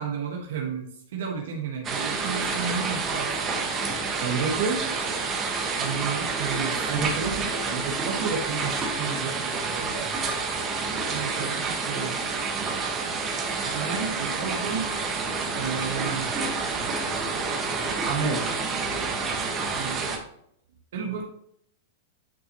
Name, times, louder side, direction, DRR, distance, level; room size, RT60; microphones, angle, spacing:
voice 1, 0.0-3.6 5.8-6.9 11.1-12.2 13.6-14.9 15.5-16.3 19.8-20.2 20.9-21.2, right 6 dB, 75° right, 1 dB, 1.4 m, -32 dB
sound 1, 1.8-20.2, right 4 dB, 25° right, 1.2 m, -29 dB
voice 2, 4.2-4.9 6.9-8.7 9.0-10.1 12.6-12.8 18.0-18.5, right 5 dB, 55° right, 2 dB, 1.6 m, -30 dB
9.1 x 4.3 x 2.9 m, 0.71 s
hypercardioid pair, 130°, 0 cm